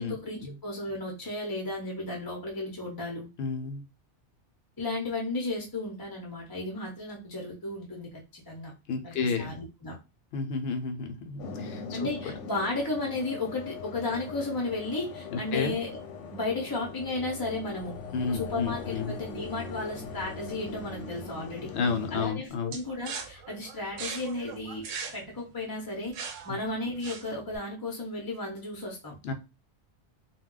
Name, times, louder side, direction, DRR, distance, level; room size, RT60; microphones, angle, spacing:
voice 1, 0.0-3.3 4.8-8.7 9.0-10.0 11.9-16.0 16.3-17.9 18.3-21.7 22.1-24.9 25.1-26.2 26.4-29.2, left 2 dB, 25° left, -1 dB, 0.5 m, -34 dB
voice 2, 3.4-3.8 8.9-9.5 10.3-12.1 15.3-15.8 18.1-19.2 21.7-22.7 29.2-29.3, left 4 dB, 65° left, 6 dB, 0.8 m, -31 dB
sound 1, 11.4-22.3, left 4 dB, 85° left, 0.9 m, -41 dB
sound 2, 22.7-27.6, right 6 dB, 90° right, 0.9 m, -40 dB
2.2 x 2.1 x 3.7 m, 0.26 s
omnidirectional pair, 1.2 m